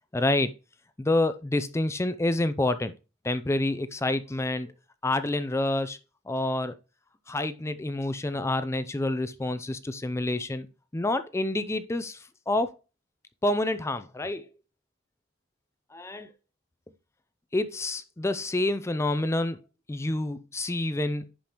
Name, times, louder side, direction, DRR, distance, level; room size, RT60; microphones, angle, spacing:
voice 1, 0.1-0.5 1.0-2.9 3.2-4.7 5.0-6.0 6.3-6.7 7.3-10.7 10.9-12.2 12.5-12.7 13.4-14.4 15.9-16.3 17.5-19.6 19.9-21.3, left 2 dB, 15° left, 0.4 m, -28 dB
10.5 x 5.0 x 3.0 m
head